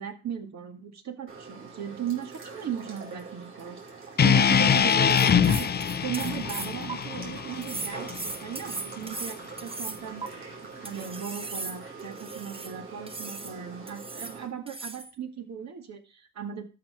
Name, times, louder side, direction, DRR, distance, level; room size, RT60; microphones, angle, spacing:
voice 1, 0.0-3.8 4.2-5.7 6.0-10.3 10.8-16.6, right 8 dB, 60° right, 6 dB, 2.1 m, -37 dB
sound 1, 1.3-14.5, right 4 dB, 45° right, 6.2 m, -43 dB
sound 2, 4.2-8.4, left 7 dB, 35° left, 0.6 m, -23 dB
sound 3, 4.9-6.9 7.6-10.3 10.8-12.7 13.1-13.5 13.9-14.4 14.7-15.1, right 3 dB, 20° right, 1.0 m, -38 dB
12.5 x 5.8 x 5.6 m, 0.34 s
cardioid pair, 90°, 30 cm